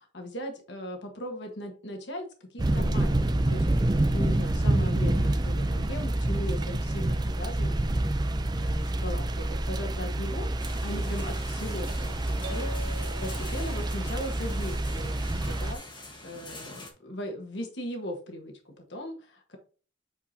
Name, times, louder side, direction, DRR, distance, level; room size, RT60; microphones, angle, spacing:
voice 1, 0.0-12.7 13.2-19.6, equal, 70° left, 3 dB, 1.4 m, -39 dB
sound 1, 2.6-15.7, right 1 dB, 25° right, 0.5 m, -27 dB
sound 2, 10.6-16.9, left 2 dB, 25° left, 1.4 m, -45 dB
sound 3, 12.4-14.3, left 1 dB, 55° right, 1.0 m, -43 dB
8.3 x 4.5 x 2.8 m, 0.38 s
head